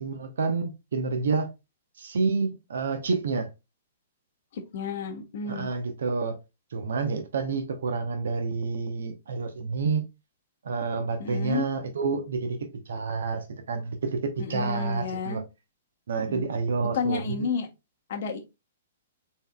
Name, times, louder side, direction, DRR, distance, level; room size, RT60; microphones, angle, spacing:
voice 1, 0.0-1.5 2.0-3.5 5.4-6.4 6.7-10.1 10.6-15.4 16.1-17.5, right 4 dB, 70° right, 0.8 m, -29 dB
voice 2, 4.5-5.7 11.2-11.6 14.4-15.4 16.2-16.4 16.9-17.7 18.1-18.4, left 5 dB, 60° left, 1.1 m, -31 dB
4.1 x 3.8 x 2.3 m
hypercardioid pair, 115°, 0 cm